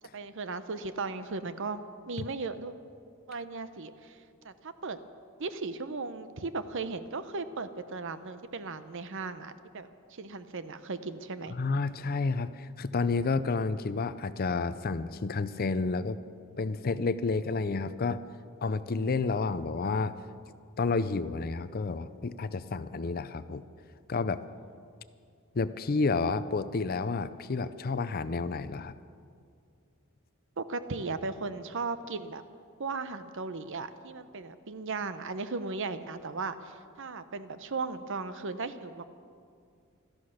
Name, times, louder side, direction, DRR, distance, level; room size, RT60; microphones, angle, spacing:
voice 1, 0.1-2.7 3.3-4.2 4.4-5.0 5.4-11.5 30.6-32.4 32.8-39.1, right 4 dB, 60° right, 12 dB, 0.8 m, -36 dB
voice 2, 11.5-16.2 16.6-18.2 18.6-20.2 20.8-23.6 24.1-24.4 25.5-29.0, left 4 dB, 45° left, 14 dB, 0.5 m, -30 dB
16.5 x 13.5 x 6.5 m, 2.3 s
head